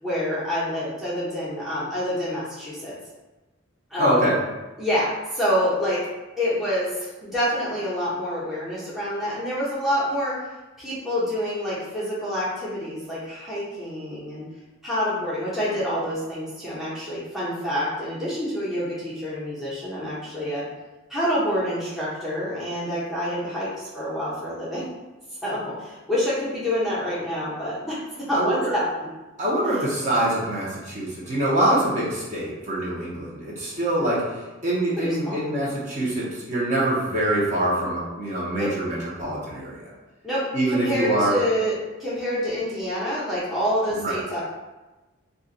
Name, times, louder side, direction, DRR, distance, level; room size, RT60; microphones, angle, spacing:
voice 1, 0.0-2.9 3.9-4.2 4.8-6.0 6.4-6.9 7.2-10.4 10.8-14.4 14.8-20.6 21.1-24.8 25.4-28.8 35.0-35.4 38.6-38.7 40.2-40.4 40.7-41.7 42.0-44.4, equal, ahead, -10 dB, 0.7 m, -27 dB
voice 2, 4.0-4.4 28.3-28.7 29.4-39.9 40.5-41.4 43.9-44.2, right 1 dB, 35° right, -7 dB, 0.8 m, -24 dB
2.5 x 2.2 x 3.8 m, 1.1 s
head